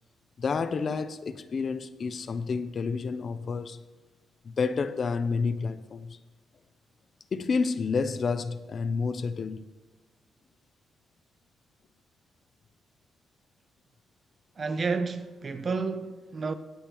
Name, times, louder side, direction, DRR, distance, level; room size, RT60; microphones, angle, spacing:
voice 1, 0.4-3.8 4.4-6.2 7.3-9.6, left 5 dB, 45° left, 0.5 m, -29 dB
voice 2, 14.6-16.5, right 4 dB, 35° right, 0.7 m, -30 dB
17.0 x 8.7 x 3.0 m
cardioid pair, 110°, 0 cm